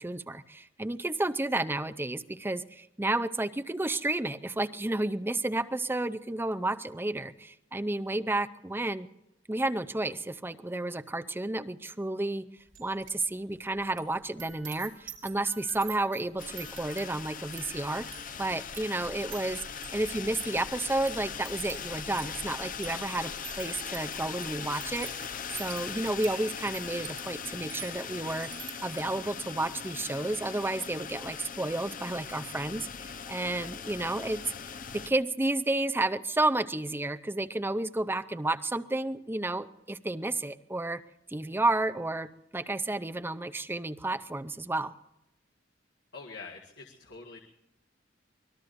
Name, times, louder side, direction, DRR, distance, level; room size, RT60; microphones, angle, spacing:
voice 1, 0.0-9.1 9.5-12.5 12.8-18.1 18.4-19.6 19.9-28.5 28.8-41.0 41.3-44.9, right 2 dB, 10° right, 11 dB, 0.5 m, -31 dB
sound 1, 12.7-13.3 13.5-29.3 29.7-30.0, right 10 dB, 85° right, 4.5 m, -48 dB
sound 2, 16.4-35.1, left 6 dB, 45° left, 0.8 m, -40 dB
voice 2, 46.1-47.4, left 4 dB, 65° left, 0 dB, 1.8 m, -45 dB
25.0 x 20.0 x 2.6 m, 0.90 s
head